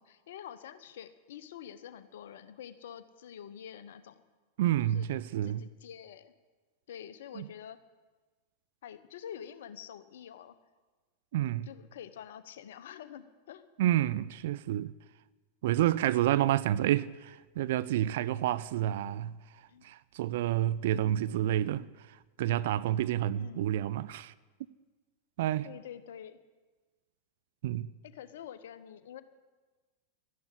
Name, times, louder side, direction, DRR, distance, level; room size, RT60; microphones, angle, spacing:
voice 1, 0.0-4.2 4.8-5.1 5.4-6.3 6.9-7.8 8.8-10.5 11.7-13.6 19.7-19.8 23.4-23.8 25.6-26.4 28.1-29.2, left 9 dB, 60° left, 1.0 m, -47 dB
voice 2, 4.6-5.7 7.3-7.5 11.3-11.7 13.8-14.9 15.6-19.3 19.8-24.3 25.4-25.7 27.6-27.9, right 12 dB, 55° right, 0.5 m, -29 dB
13.0 x 11.0 x 10.0 m
figure-of-eight pair, 90°, 0 cm